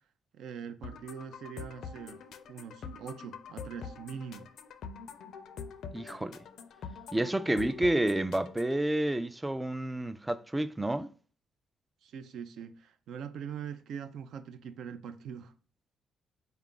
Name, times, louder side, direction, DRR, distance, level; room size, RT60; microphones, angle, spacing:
voice 1, 0.3-2.2 2.5-4.5 12.0-15.5, right 7 dB, 75° right, 0.4 m, -42 dB
sound 1, 0.8-8.8, left 5 dB, 70° left, 0.4 m, -45 dB
voice 2, 5.9-6.4 7.1-11.1, right 1 dB, 10° right, 0.3 m, -30 dB
4.3 x 2.4 x 3.7 m
cardioid pair, 90°, 0 cm